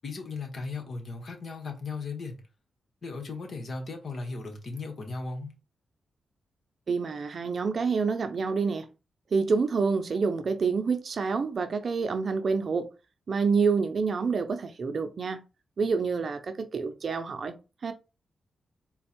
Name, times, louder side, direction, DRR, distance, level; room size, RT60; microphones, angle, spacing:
voice 1, 0.0-2.4 3.0-5.5, left 3 dB, 60° left, 1.4 m, -36 dB
voice 2, 6.9-8.9 9.3-12.9 13.3-15.4 15.8-17.5 17.8-17.9, right 5 dB, 55° right, 0.6 m, -27 dB
4.4 x 2.3 x 4.4 m
cardioid pair, 65°, 0 cm